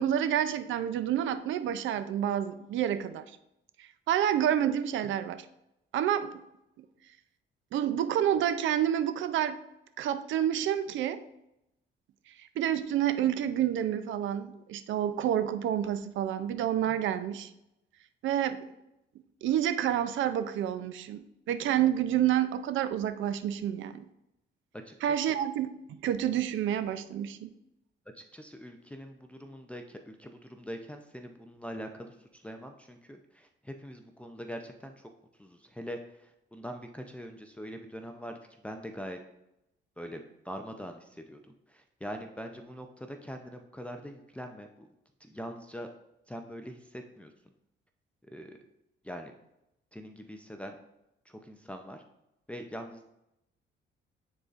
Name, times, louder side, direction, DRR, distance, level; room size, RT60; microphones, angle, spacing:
voice 1, 0.0-3.2 3.8-5.4 5.9-6.4 6.8-6.9 7.7-9.6 10.0-11.2 12.4-17.5 18.2-18.7 19.4-24.0 25.0-25.7 26.0-27.5, right 10 dB, 75° right, 12 dB, 0.5 m, -29 dB
voice 2, 24.9-25.2 28.1-35.1 35.4-38.4 38.6-39.2 40.0-41.4 41.7-44.9 45.2-45.9 46.3-47.3 48.3-48.6 49.0-49.3 49.9-50.8 51.3-52.0 52.5-53.0, equal, 5° left, 3 dB, 0.5 m, -43 dB
9.7 x 4.0 x 2.5 m, 0.85 s
cardioid pair, 90°, 20 cm